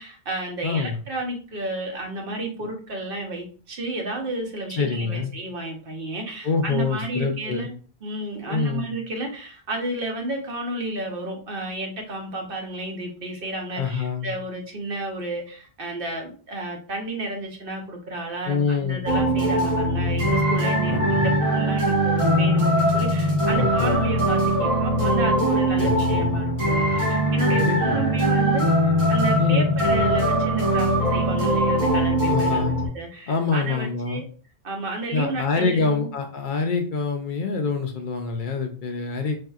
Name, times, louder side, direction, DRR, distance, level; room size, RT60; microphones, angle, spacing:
voice 1, 0.0-7.7 8.0-34.2 34.6-36.1, right 2 dB, 65° right, 2 dB, 1.0 m, -32 dB
voice 2, 0.6-1.0 4.8-5.3 6.4-7.7 8.5-8.9 13.8-14.3 18.5-19.1 20.9-21.4 23.6-24.1 25.8-26.4 27.5-28.1 29.4-29.7 32.3-32.7 33.3-34.2 35.1-39.4, left 4 dB, 60° left, 4 dB, 0.6 m, -26 dB
sound 1, 19.1-32.9, right 1 dB, 30° right, 1.1 m, -21 dB
4.1 x 2.7 x 2.3 m, 0.40 s
omnidirectional pair, 1.1 m